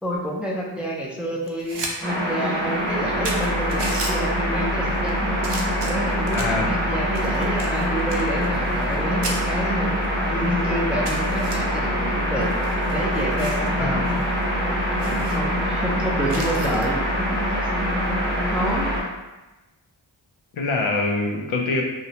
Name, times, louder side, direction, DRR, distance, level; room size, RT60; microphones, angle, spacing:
voice 1, 0.0-5.4 5.8-10.0 10.3-12.5 12.9-14.2 14.9-17.0 18.5-18.9, right 1 dB, 5° right, -3 dB, 0.3 m, -29 dB
sound 1, 1.4-1.9 2.3-2.4 2.9-3.0 3.2-4.1 4.8-5.1 5.4-6.6 7.1-9.0 9.2-9.4 10.0-10.1 10.4-10.5 11.0-11.5 12.4-13.7 14.1-14.2 14.5-14.6 15.0-15.4 16.3-16.9 18.6-18.8, right 3 dB, 60° right, 0.5 m, -34 dB
sound 2, 2.0-19.0, equal, 25° right, 0.8 m, -24 dB
voice 2, 6.3-6.7 13.8-14.0 20.5-21.8, left 3 dB, 75° left, 1 dB, 0.6 m, -24 dB
2.6 x 2.0 x 2.8 m, 1.1 s
wide cardioid pair, 55°, 48 cm